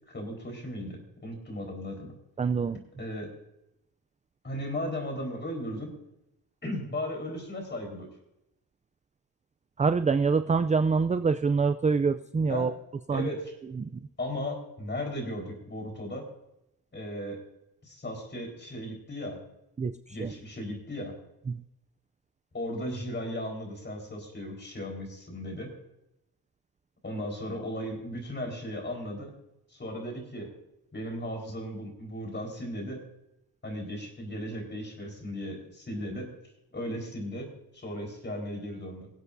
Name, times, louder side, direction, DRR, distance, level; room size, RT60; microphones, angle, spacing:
voice 1, 0.1-2.1 3.0-3.3 4.4-5.9 6.6-8.1 12.5-12.7 13.1-13.5 14.2-16.2 16.9-17.4 17.8-19.4 20.1-21.2 22.5-25.7 27.0-29.3 29.7-30.5 30.9-33.0 33.6-36.3 36.7-37.5 37.7-39.1, left 1 dB, 25° left, 2 dB, 4.4 m, -36 dB
voice 2, 2.4-2.8 9.8-12.7 13.1-13.3 13.8-14.0 19.8-20.3 21.5-21.6, right 5 dB, 20° right, 10 dB, 0.4 m, -26 dB
24.5 x 8.2 x 2.7 m, 0.85 s
cardioid pair, 115°, 42 cm